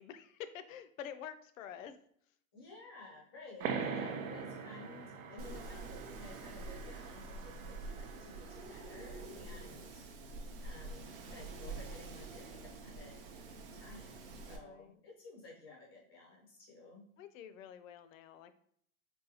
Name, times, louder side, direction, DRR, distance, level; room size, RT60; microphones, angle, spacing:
voice 1, 0.0-2.0 9.2-9.7 14.6-15.0 17.2-18.5, left 9 dB, 75° left, 11 dB, 0.5 m, -48 dB
voice 2, 2.5-10.0 10.6-13.3 13.7-17.1, left 3 dB, 20° left, -2 dB, 0.3 m, -54 dB
sound 1, 3.6-8.8, right 6 dB, 90° right, 0.6 m, -43 dB
Wind, 5.4-14.6, right 3 dB, 45° right, 0.5 m, -47 dB
4.0 x 2.2 x 2.7 m, 0.65 s
supercardioid pair, 170°, 40 cm